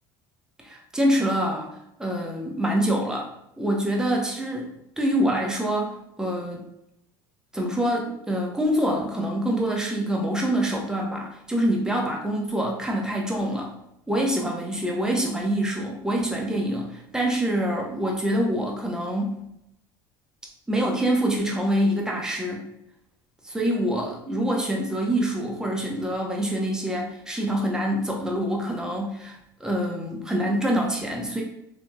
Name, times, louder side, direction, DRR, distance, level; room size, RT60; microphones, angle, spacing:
voice 1, 0.6-1.7 2.0-3.3 3.6-4.7 5.0-6.6 7.5-13.7 14.1-19.4 20.7-22.7 23.4-31.4, equal, 5° right, -1 dB, 0.7 m, -25 dB
3.2 x 2.6 x 2.2 m, 0.82 s
supercardioid pair, 95°, 12 cm